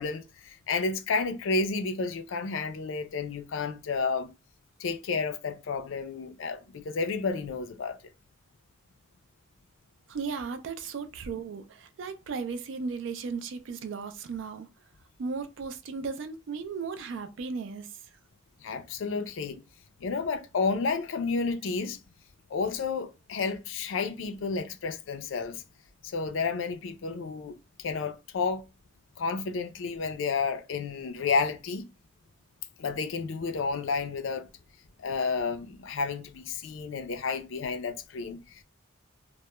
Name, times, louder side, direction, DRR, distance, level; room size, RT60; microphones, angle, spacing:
voice 1, 0.0-4.3 4.8-8.0 18.6-19.6 20.0-22.0 22.5-25.6 26.0-28.6 29.2-31.8 32.8-34.4 35.0-38.6, left 4 dB, 75° left, 0.4 m, -31 dB
voice 2, 10.1-14.7 15.2-18.0, right 5 dB, 70° right, 0.3 m, -36 dB
2.2 x 2.0 x 2.9 m
head